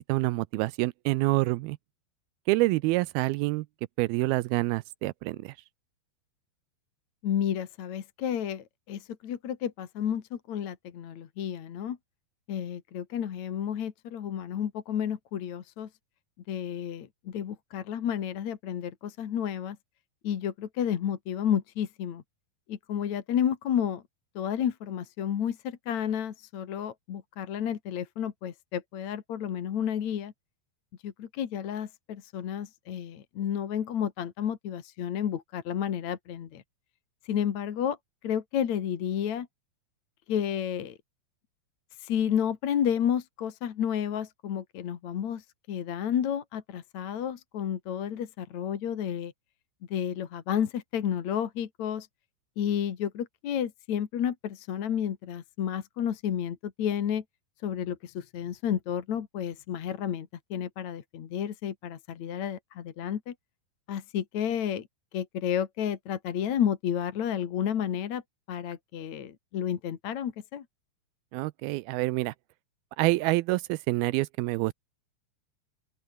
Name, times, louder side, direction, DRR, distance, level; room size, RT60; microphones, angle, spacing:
voice 1, 0.1-1.8 2.5-3.7 4.0-5.5 71.3-72.3 73.0-74.7, right 21 dB, 85° right, 2.5 m, -27 dB
voice 2, 7.2-12.0 12.5-15.9 16.5-19.8 20.2-22.2 22.7-24.0 24.3-30.3 31.0-36.6 37.3-38.0 38.2-39.5 40.3-40.9 42.0-49.3 49.9-52.1 52.6-57.2 57.6-63.3 63.9-64.9 65.1-68.2 68.5-70.6, left 9 dB, 55° left, 2.8 m, -31 dB
open air
omnidirectional pair, 4.3 m